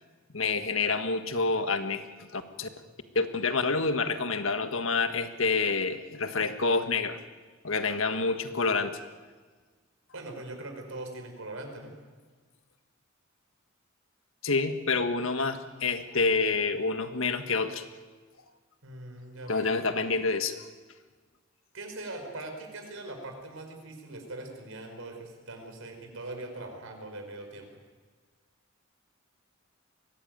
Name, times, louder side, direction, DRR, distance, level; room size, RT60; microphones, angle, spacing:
voice 1, 0.3-2.0 2.3-2.7 3.1-7.2 7.6-9.0 14.4-17.8 19.5-20.5, left 4 dB, 70° left, 8 dB, 1.6 m, -28 dB
voice 2, 10.1-11.9 18.8-19.7 21.7-27.7, right 2 dB, 75° right, 4 dB, 5.1 m, -41 dB
23.0 x 17.5 x 9.4 m, 1.4 s
head